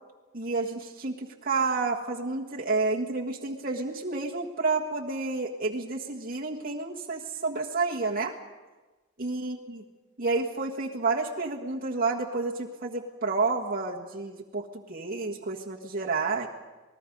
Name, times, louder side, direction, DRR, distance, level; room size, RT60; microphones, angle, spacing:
voice 1, 0.3-8.3 9.2-9.8 10.2-16.5, right 3 dB, 45° right, -2 dB, 1.5 m, -30 dB
27.0 x 19.5 x 5.3 m, 1.2 s
head